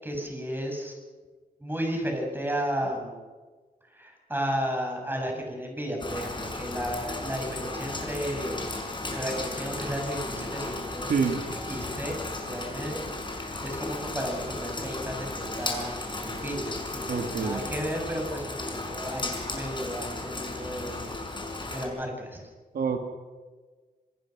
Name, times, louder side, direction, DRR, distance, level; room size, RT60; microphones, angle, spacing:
voice 1, 0.0-0.9 1.6-3.2 3.9-8.7 9.0-11.1 11.7-12.2 12.5-13.0 13.6-15.9 16.2-21.1 21.7-22.5, equal, 15° right, 1 dB, 7.6 m, -33 dB
Rain, 6.0-21.8, left 2 dB, 30° left, 5.5 m, -35 dB
voice 2, 11.1-11.4 17.1-17.7 22.7-23.0, right 5 dB, 80° right, 5 dB, 2.1 m, -26 dB
27.0 x 20.5 x 6.1 m, 1.4 s
cardioid pair, 80°, 15 cm